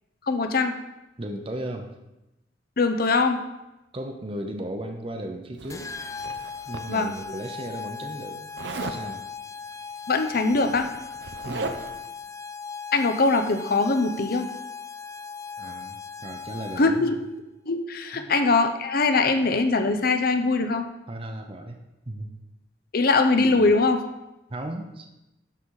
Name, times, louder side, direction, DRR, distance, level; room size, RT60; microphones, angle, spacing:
voice 1, 0.3-0.7 2.8-3.4 6.9-7.1 10.1-10.9 12.9-14.5 16.8-17.2 17.7-20.9 22.9-24.0, left 3 dB, 55° left, 7 dB, 0.7 m, -22 dB
voice 2, 1.2-1.9 3.9-5.9 6.7-8.4 8.8-9.2 11.4-11.8 15.6-17.1 18.1-18.3 21.1-21.8 22.1-22.4 23.4-23.7 24.5-25.1, right 1 dB, 30° right, 4 dB, 0.7 m, -35 dB
Zipper (clothing), 5.6-7.2 8.6-9.0 10.2-10.3 10.6-12.1, right 3 dB, 70° right, 0.6 m, -36 dB
sound 1, 5.7-17.1, left 6 dB, 20° left, 0.3 m, -38 dB
11.5 x 4.0 x 4.8 m, 0.96 s
head